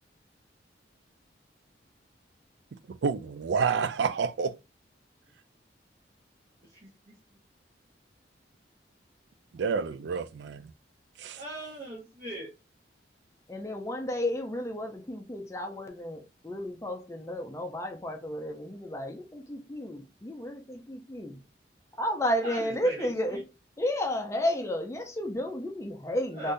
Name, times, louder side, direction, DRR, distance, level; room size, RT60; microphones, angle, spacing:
voice 1, 3.0-4.6 9.5-10.7 11.2-11.4, right 5 dB, 65° right, 0.3 m, -29 dB
voice 2, 11.3-12.5 22.4-23.4 26.3-26.5, right 1 dB, 40° right, 1.0 m, -40 dB
voice 3, 13.5-21.4 22.0-23.4 23.8-26.5, left 1 dB, 15° left, 0.5 m, -32 dB
3.4 x 2.7 x 2.5 m
head